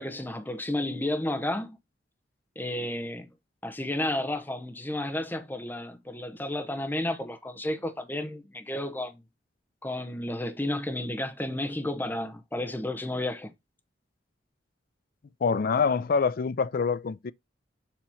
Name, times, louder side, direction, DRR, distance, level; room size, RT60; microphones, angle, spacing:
voice 1, 0.0-1.8 2.6-3.3 3.6-9.2 9.8-13.5, left 1 dB, 10° left, 0.8 m, -32 dB
voice 2, 15.4-17.3, left 5 dB, 50° left, 0.4 m, -25 dB
7.2 x 3.0 x 5.6 m
head